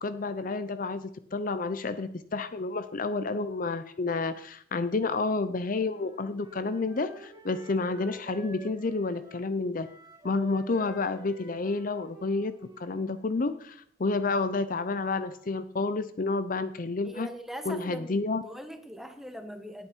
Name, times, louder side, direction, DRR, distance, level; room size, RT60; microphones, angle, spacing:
voice 1, 0.0-9.9 10.2-12.5 12.8-17.3 17.7-18.4, left 3 dB, 45° left, 12 dB, 0.6 m, -30 dB
Wind instrument woodwind instrument, 5.9-13.6, right 1 dB, 20° right, 3.3 m, -49 dB
voice 2, 17.0-19.9, equal, ahead, 6 dB, 1.2 m, -41 dB
18.5 x 8.8 x 4.5 m, 0.65 s
head